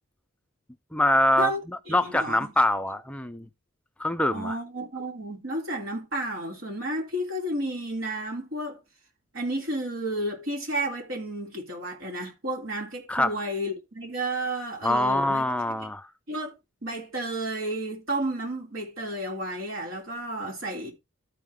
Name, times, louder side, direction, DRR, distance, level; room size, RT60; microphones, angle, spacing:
voice 1, 0.9-1.5 1.9-3.5 4.0-4.6 13.1-13.3 14.8-16.1, left 1 dB, 5° left, 0.4 m, -24 dB
voice 2, 1.9-2.5 4.3-8.8 9.3-15.4 15.8-15.9 16.3-16.5 16.8-20.9, right 1 dB, 85° right, 3.4 m, -32 dB
13.0 x 5.0 x 3.5 m
head